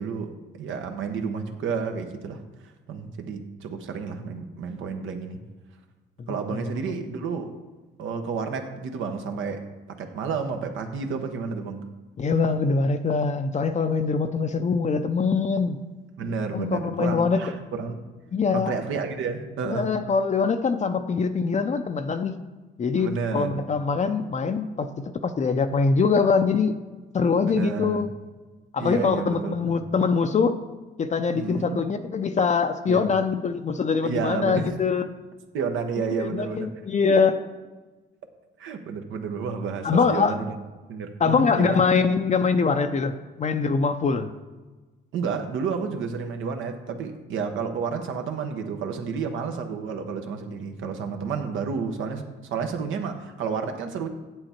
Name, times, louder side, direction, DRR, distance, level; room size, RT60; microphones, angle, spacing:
voice 1, 0.0-5.4 6.3-7.5 8.0-11.8 16.2-18.0 18.5-19.9 23.0-23.6 27.5-28.1 28.8-29.7 31.3-31.8 32.9-33.1 34.0-34.7 35.5-36.7 37.1-37.2 38.6-40.5 40.9-41.8 45.1-54.1, right 5 dB, 80° right, 5 dB, 1.1 m, -31 dB
voice 2, 12.2-15.8 16.5-17.4 18.3-18.8 19.6-22.4 22.8-26.8 27.1-28.1 28.7-30.6 31.0-35.1 36.2-37.4 39.8-40.4 41.2-44.3, left 5 dB, 35° left, 8 dB, 0.5 m, -23 dB
8.2 x 7.8 x 4.4 m, 1.2 s
cardioid pair, 90°, 20 cm